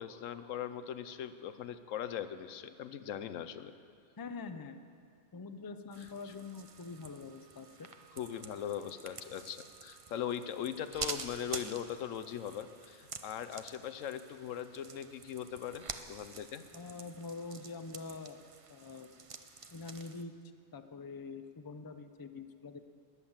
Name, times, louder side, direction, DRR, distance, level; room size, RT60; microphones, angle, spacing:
voice 1, 0.0-3.7 6.0-6.4 8.2-16.7, left 9 dB, 85° left, 12 dB, 1.1 m, -40 dB
voice 2, 4.2-4.8 5.3-7.9 16.7-18.4 18.7-19.1 19.7-20.3 20.7-22.8, left 4 dB, 25° left, 8 dB, 0.5 m, -45 dB
sound 1, 5.9-20.2, right 4 dB, 35° right, 0.6 m, -48 dB
20.5 x 8.4 x 7.3 m, 2.3 s
omnidirectional pair, 1.3 m